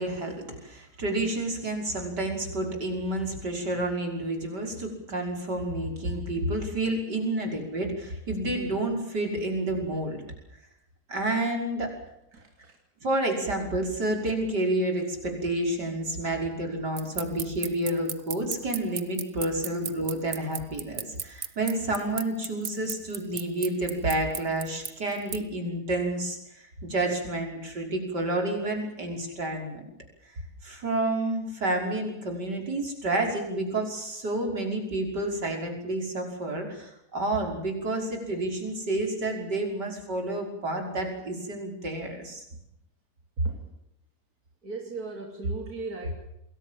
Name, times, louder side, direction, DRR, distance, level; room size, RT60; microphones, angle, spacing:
voice 1, 0.0-10.2 11.1-11.9 13.0-29.9 30.6-42.4, right 1 dB, 80° right, 2 dB, 6.4 m, -30 dB
voice 2, 12.3-12.8 43.4-43.7 44.6-46.1, right 2 dB, 60° right, 2 dB, 3.6 m, -34 dB
sound 1, 17.0-25.4, right 7 dB, 45° right, 1.3 m, -34 dB
28.5 x 21.5 x 7.6 m, 0.82 s
omnidirectional pair, 1.8 m